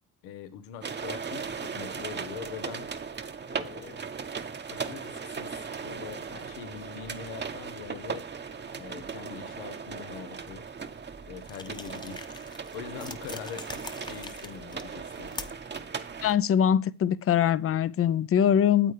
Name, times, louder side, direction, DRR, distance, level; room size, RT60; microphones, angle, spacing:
voice 1, 0.2-2.9 3.5-4.0 4.7-8.3 8.7-10.7 11.3-15.5, left 9 dB, 85° left, 1.0 m, -43 dB
sound 1, 0.8-16.4, right 5 dB, 30° right, 0.9 m, -38 dB
sound 2, 11.4-15.8, left 2 dB, 10° left, 0.9 m, -44 dB
voice 2, 16.2-18.9, left 9 dB, 35° left, 0.5 m, -23 dB
8.7 x 8.1 x 3.3 m
supercardioid pair, 75°, 38 cm